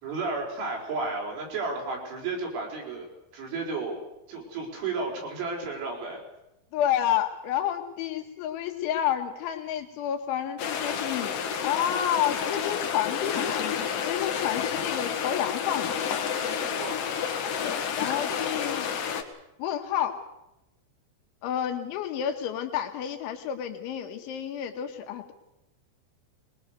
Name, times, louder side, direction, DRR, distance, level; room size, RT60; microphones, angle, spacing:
voice 1, 0.0-3.1 3.3-4.0 4.3-6.2 16.3-17.0, right 3 dB, 85° right, -1 dB, 7.4 m, -33 dB
voice 2, 6.7-16.0 17.6-19.1 19.6-20.2 21.4-25.3, left 10 dB, 80° left, 5 dB, 3.6 m, -30 dB
sound 1, 10.6-19.2, left 7 dB, 55° left, 2.7 m, -30 dB
22.5 x 21.0 x 6.7 m, 0.90 s
omnidirectional pair, 5.4 m